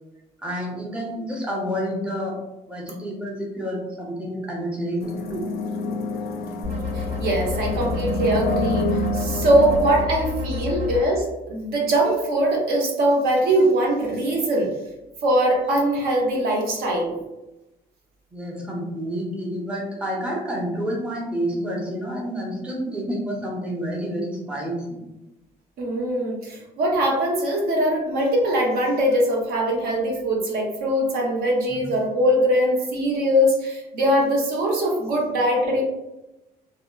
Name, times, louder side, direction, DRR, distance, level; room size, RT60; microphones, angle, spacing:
voice 1, 0.4-2.4 2.7-5.0 5.3-5.4 18.3-25.0 31.7-31.8, equal, 5° right, -3 dB, 0.6 m, -29 dB
sound 1, 5.0-10.0, left 1 dB, 65° left, 0.4 m, -28 dB
sound 2, 6.6-11.0, left 5 dB, 80° right, 1.1 m, -29 dB
voice 2, 6.9-14.7 15.2-17.2 25.8-35.8, right 1 dB, 65° right, -1 dB, 0.7 m, -22 dB
2.7 x 2.1 x 2.2 m, 0.97 s
cardioid pair, 110°, 17 cm